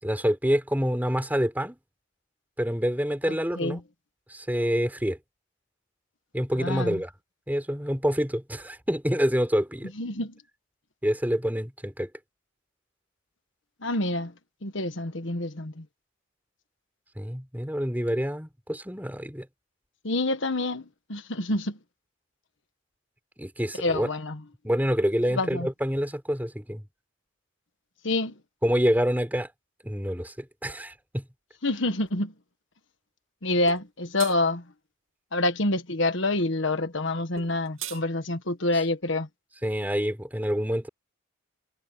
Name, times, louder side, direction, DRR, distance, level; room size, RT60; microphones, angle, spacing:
voice 1, 0.0-1.8 2.6-3.8 4.3-5.2 6.3-7.1 7.5-9.9 11.0-12.1 17.2-19.5 23.4-24.1 24.6-26.9 28.6-29.5 29.8-31.2 39.6-40.9, equal, 10° right, 4.8 m, -27 dB
voice 2, 6.6-7.0 10.0-10.3 13.8-14.3 14.6-15.8 20.0-21.8 23.8-24.4 25.4-25.7 28.0-28.3 31.6-32.3 33.4-34.6 35.3-39.3, left 2 dB, 60° left, 1.5 m, -27 dB
sound 1, 33.7-33.8 34.2-34.4 37.4-38.0, right 10 dB, 70° right, 2.7 m, -37 dB
head